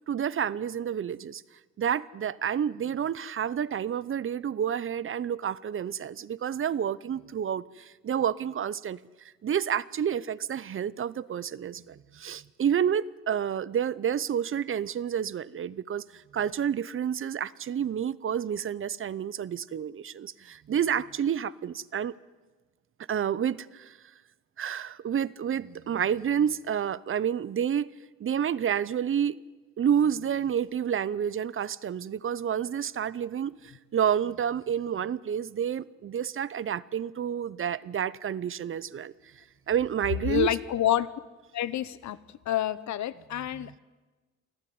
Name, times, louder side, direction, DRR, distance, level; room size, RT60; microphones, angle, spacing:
voice 1, 0.1-1.4 1.8-9.0 9.4-22.1 23.1-24.0 24.6-27.9 28.2-29.4 29.8-33.5 33.9-39.1 39.7-40.5 43.5-43.7, right 8 dB, 45° right, 0.7 m, -29 dB
voice 2, 40.2-41.1 41.5-42.2 42.5-43.8, left 12 dB, 70° left, 1.0 m, -28 dB
24.5 x 14.0 x 9.5 m
cardioid pair, 90°, 30 cm